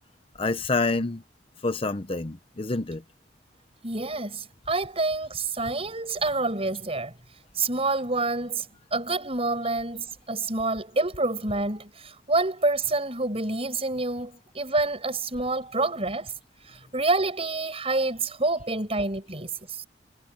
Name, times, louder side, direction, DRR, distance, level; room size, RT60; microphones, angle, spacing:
voice 1, 0.4-1.2 1.6-3.0, left 3 dB, 30° left, 0.8 m, -27 dB
voice 2, 3.8-7.1 7.6-8.6 8.9-16.3 16.9-19.9, right 3 dB, 35° right, 7.9 m, -27 dB
head